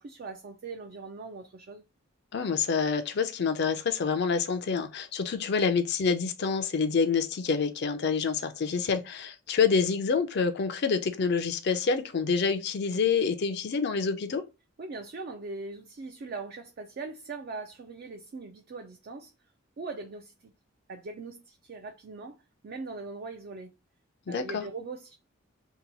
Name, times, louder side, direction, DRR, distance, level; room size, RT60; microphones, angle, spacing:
voice 1, 0.0-1.8 14.8-19.3 19.8-20.5 20.9-22.4 22.6-23.7 24.3-25.1, right 3 dB, 45° right, 0.3 m, -40 dB
voice 2, 2.3-14.4 24.3-24.6, left 5 dB, 50° left, 0.4 m, -27 dB
2.8 x 2.2 x 3.9 m
head